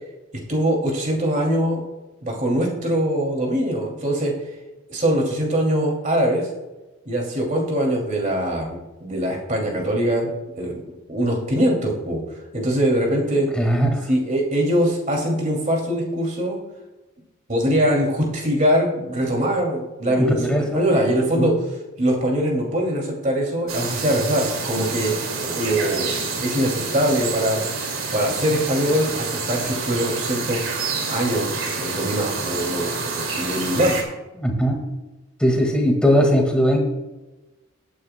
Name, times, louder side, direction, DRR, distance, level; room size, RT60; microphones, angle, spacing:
voice 1, 0.5-1.8 2.2-4.3 4.9-6.5 7.1-10.3 10.6-10.8 11.1-12.2 12.5-13.5 14.1-16.6 17.5-21.5 22.0-25.1 25.4-26.1 26.4-27.6 28.1-30.6 31.1-34.0, equal, 35° right, 0 dB, 2.6 m, -22 dB
voice 2, 13.6-14.0 20.1-20.8 21.3-21.5 34.4-34.8 35.4-36.8, equal, 5° left, 1 dB, 1.8 m, -19 dB
sound 1, 23.7-34.0, right 4 dB, 75° right, 2.4 m, -28 dB
18.5 x 9.5 x 2.2 m, 1.1 s
head